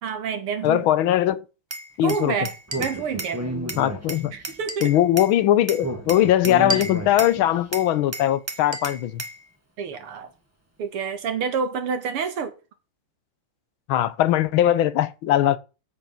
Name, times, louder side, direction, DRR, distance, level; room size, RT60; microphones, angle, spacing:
voice 1, 0.0-0.9 2.0-3.4 4.3-4.9 9.8-10.3 10.8-12.6, right 6 dB, 80° right, 2.5 m, -28 dB
voice 2, 0.6-1.4 2.0-2.3 3.8-4.3 4.8-9.2 13.9-15.6, left 12 dB, 75° left, 1.6 m, -20 dB
Glass, 1.7-3.4 3.7-5.3 5.7-7.4 7.7-9.4, right 1 dB, 30° right, 0.5 m, -33 dB
Speech, 2.7-4.5 5.8-7.6, right 1 dB, 10° right, 1.5 m, -32 dB
13.0 x 4.7 x 5.8 m
omnidirectional pair, 2.4 m